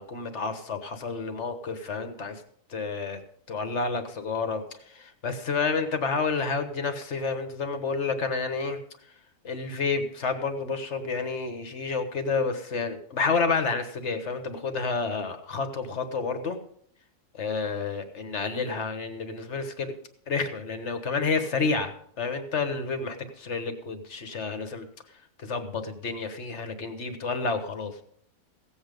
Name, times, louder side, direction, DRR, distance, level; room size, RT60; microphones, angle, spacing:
voice 1, 0.0-2.4 2.7-3.2 3.5-8.8 9.4-16.6 17.3-19.9 20.3-24.9 25.4-28.0, left 4 dB, 45° left, 8 dB, 1.5 m, -30 dB
16.0 x 8.1 x 5.2 m, 0.65 s
omnidirectional pair, 1.7 m